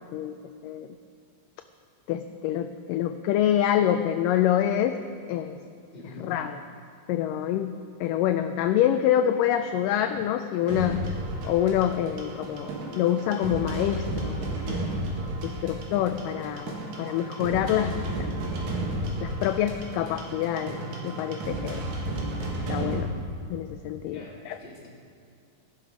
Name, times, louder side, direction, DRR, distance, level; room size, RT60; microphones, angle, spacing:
voice 1, 2.1-5.0 5.3-5.6 6.2-6.6 7.1-7.8 8.0-11.0 11.4-15.0 15.4-18.3 19.2-21.8 22.7-23.1 23.5-24.6, left 10 dB, 85° left, 8 dB, 1.9 m, -26 dB
voice 2, 5.9-6.3 24.1-24.9, left 2 dB, 15° left, -5 dB, 2.4 m, -45 dB
sound 1, 10.7-23.0, right 1 dB, 55° right, 3.0 m, -33 dB
16.5 x 11.5 x 4.9 m, 2.4 s
omnidirectional pair, 4.3 m